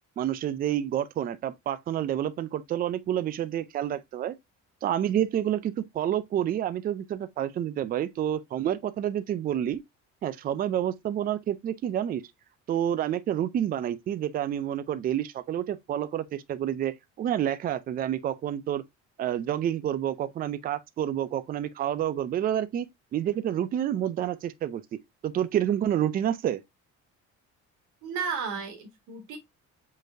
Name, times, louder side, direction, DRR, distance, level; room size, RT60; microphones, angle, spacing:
voice 1, 0.2-4.4 4.8-9.8 10.2-12.2 12.7-18.8 19.2-22.9 23.1-24.8 25.2-26.6, right 11 dB, 30° right, 0.4 m, -29 dB
voice 2, 28.0-29.4, right 6 dB, 80° right, 1.9 m, -33 dB
5.2 x 3.9 x 2.6 m
cardioid pair, 165°, 30 cm